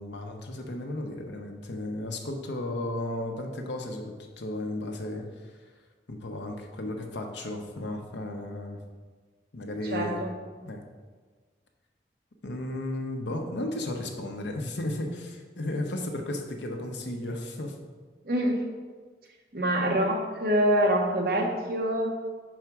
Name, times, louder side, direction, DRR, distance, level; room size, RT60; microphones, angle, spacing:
voice 1, 0.0-5.2 6.1-8.8 9.5-10.2 10.6-10.8 12.4-17.7, left 1 dB, 85° left, 3 dB, 0.9 m, -34 dB
voice 2, 9.8-10.4 18.2-18.6 19.5-22.1, right 1 dB, 55° right, 1 dB, 0.9 m, -25 dB
4.7 x 4.4 x 5.9 m, 1.4 s
head